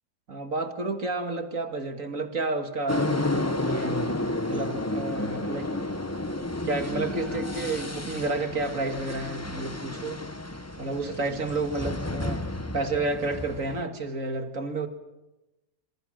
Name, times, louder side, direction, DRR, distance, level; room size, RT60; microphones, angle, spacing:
voice 1, 0.3-3.2 3.6-4.1 4.5-5.7 6.2-6.3 6.7-10.2 10.8-14.9, right 3 dB, 60° right, 6 dB, 2.4 m, -31 dB
sound 1, 2.9-13.8, left 2 dB, 10° left, 1.0 m, -31 dB
27.5 x 27.5 x 6.5 m, 1.0 s
omnidirectional pair, 1.5 m